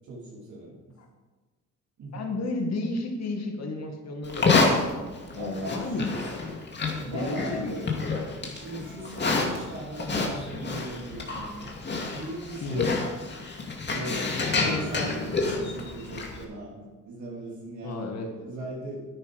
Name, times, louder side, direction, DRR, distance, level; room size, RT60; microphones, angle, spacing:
voice 1, 0.1-1.0 2.0-2.3 5.3-6.2 7.0-8.0 8.3-11.7 12.1-12.9 13.9-19.1, right 1 dB, 70° right, -5 dB, 3.5 m, -38 dB
voice 2, 2.1-4.8 5.3-6.2 7.0-8.1 12.6-12.9 17.8-18.3, left 2 dB, 60° left, 3 dB, 2.2 m, -32 dB
Livestock farm animals working animals, 4.2-16.4, left 3 dB, 35° left, 2.4 m, -29 dB
10.5 x 9.4 x 5.0 m, 1.3 s
cardioid pair, 90°, 30 cm